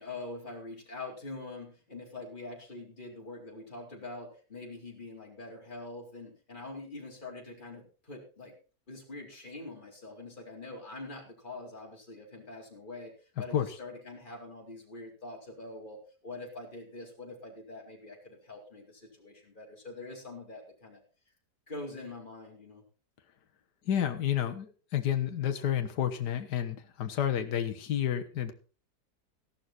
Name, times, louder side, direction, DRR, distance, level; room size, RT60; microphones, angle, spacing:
voice 1, 0.0-8.5 8.9-13.1 13.4-21.0 21.7-22.8, left 2 dB, 25° left, -1 dB, 4.3 m, -44 dB
voice 2, 23.9-28.5, left 10 dB, 75° left, 6 dB, 1.8 m, -30 dB
15.0 x 11.5 x 4.3 m, 0.37 s
omnidirectional pair, 1.8 m